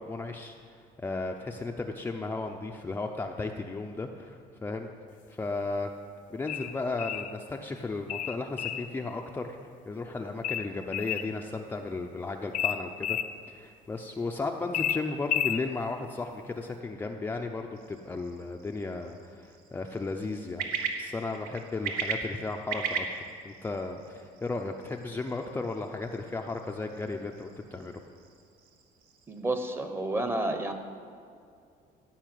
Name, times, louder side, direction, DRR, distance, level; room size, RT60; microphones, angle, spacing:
voice 1, 0.0-4.9 5.3-5.9 6.3-13.2 13.5-20.7 21.0-27.9, left 3 dB, 15° left, 2 dB, 0.6 m, -35 dB
sound 1, 6.5-7.3 8.1-8.9 10.4-11.3 12.5-13.3 14.7-15.6, left 10 dB, 55° left, 0.7 m, -31 dB
sound 2, 17.7-29.4, right 6 dB, 75° right, 1.5 m, -39 dB
voice 2, 29.3-30.7, right 2 dB, 15° right, 6 dB, 1.0 m, -30 dB
15.0 x 5.6 x 9.2 m, 2.4 s
cardioid pair, 150°, 16 cm